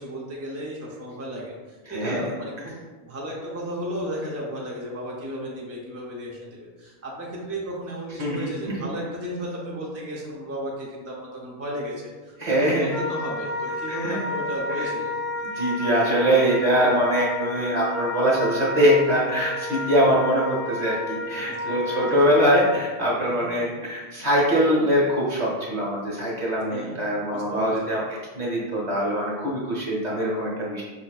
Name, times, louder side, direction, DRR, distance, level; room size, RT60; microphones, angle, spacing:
voice 1, 0.0-1.5 1.9-2.8 3.0-15.1 21.5-22.1 23.0-23.7 26.7-27.0 27.3-28.0, equal, 25° right, -3 dB, 0.3 m, -34 dB
voice 2, 1.9-2.2 8.2-8.5 12.4-12.9 13.9-14.1 14.8-14.9 15.4-28.1 28.3-30.8, equal, 45° right, -5 dB, 1.0 m, -23 dB
Wind instrument woodwind instrument, 12.9-22.8, left 2 dB, 70° left, 0.9 m, -31 dB
5.2 x 2.5 x 2.3 m, 1.3 s
omnidirectional pair, 1.1 m